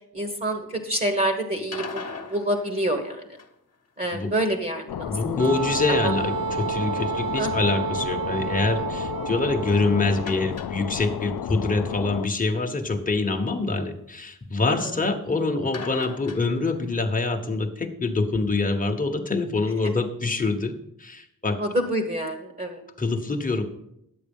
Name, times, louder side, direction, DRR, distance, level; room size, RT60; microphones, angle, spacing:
voice 1, 0.1-3.4 4.0-5.4 6.0-6.1 7.3-7.7 14.6-15.0 21.6-22.8, right 1 dB, 25° right, 5 dB, 1.2 m, -27 dB
sound 1, 1.6-3.7 10.1-11.4 11.7-11.8 12.1-12.2 15.7-17.1, left 5 dB, 45° left, 1.2 m, -40 dB
sound 2, 4.9-12.3, left 9 dB, 75° left, 0.5 m, -33 dB
voice 2, 5.1-21.6 23.0-23.6, left 3 dB, 20° left, 4 dB, 1.1 m, -25 dB
Wind instrument woodwind instrument, 5.4-10.5, right 7 dB, 65° right, 0.8 m, -30 dB
10.5 x 7.9 x 5.4 m, 0.80 s
wide cardioid pair, 105°, 36 cm